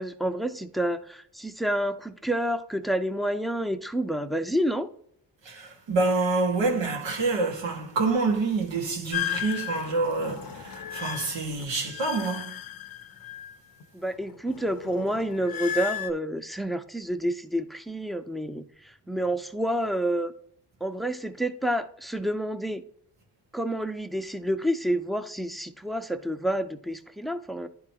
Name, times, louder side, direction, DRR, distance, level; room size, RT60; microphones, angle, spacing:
voice 1, 0.0-4.9 13.9-20.3 20.8-22.8 23.5-27.7, equal, ahead, 0.6 m, -29 dB
voice 2, 5.4-12.6, right 3 dB, 80° right, 1.7 m, -27 dB
sound 1, 9.1-13.8 14.2-16.1, left 11 dB, 50° left, 0.7 m, -35 dB
10.5 x 3.7 x 2.9 m
supercardioid pair, 50°, 45 cm